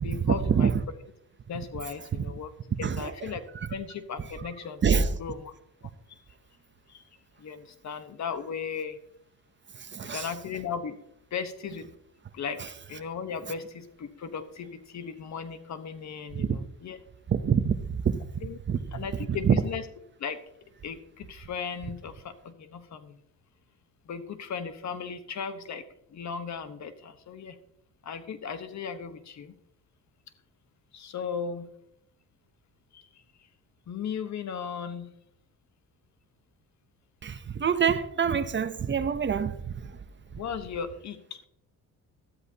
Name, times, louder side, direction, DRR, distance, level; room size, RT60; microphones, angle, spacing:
voice 1, 0.0-0.7 1.5-2.5 2.8-5.5 6.9-7.1 7.4-9.0 10.0-11.0 11.3-11.9 12.3-12.6 12.9-17.0 18.4-18.6 18.9-19.9 20.2-20.4 20.8-23.2 24.0-25.8 26.1-27.6 28.0-29.5 30.9-31.7 32.9-33.2 33.9-35.1 40.3-41.4, left 6 dB, 50° left, 11 dB, 1.1 m, -36 dB
voice 2, 9.9-10.2 16.4-16.5 17.3-17.8 18.0-18.2 18.7-18.8 19.5-19.6 37.2-39.6, right 7 dB, 30° right, 12 dB, 0.7 m, -25 dB
13.5 x 13.0 x 2.8 m, 0.77 s
cardioid pair, 110°, 35 cm